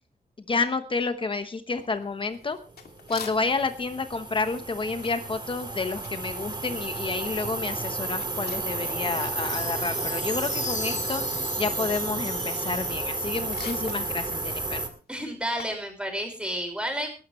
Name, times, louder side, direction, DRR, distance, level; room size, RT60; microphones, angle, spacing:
voice 1, 0.5-2.6 3.1-14.8, left 4 dB, 35° left, 9 dB, 1.0 m, -30 dB
sound 1, 1.8-3.8 4.1-9.3 9.6-15.9, left 6 dB, 90° left, 2.5 m, -47 dB
sound 2, 2.7-14.9, right 3 dB, 30° right, 2.1 m, -32 dB
sound 3, 9.0-13.7, left 4 dB, 55° left, 4.5 m, -39 dB
voice 2, 15.1-17.1, equal, 5° right, 5 dB, 5.1 m, -31 dB
20.0 x 12.5 x 3.2 m, 0.34 s
wide cardioid pair, 125°, 16 cm